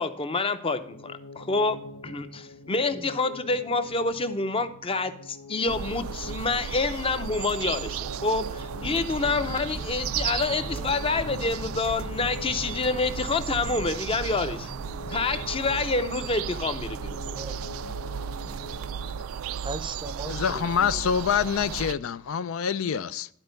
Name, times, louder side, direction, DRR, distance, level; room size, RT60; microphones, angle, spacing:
voice 1, 0.0-1.8 2.0-14.7 15.1-17.2, left 3 dB, 25° left, 0.6 m, -27 dB
sound 1, 0.8-19.6, left 2 dB, 90° left, 0.7 m, -44 dB
sound 2, 5.7-21.9, right 8 dB, 80° right, 0.3 m, -35 dB
sound 3, 8.7-17.7, equal, 55° left, 1.1 m, -42 dB
voice 2, 10.6-11.0 17.2-17.6 19.6-21.0, right 2 dB, 25° right, 0.6 m, -39 dB
voice 3, 20.3-23.3, left 7 dB, 70° left, 0.4 m, -26 dB
11.5 x 4.4 x 5.1 m
head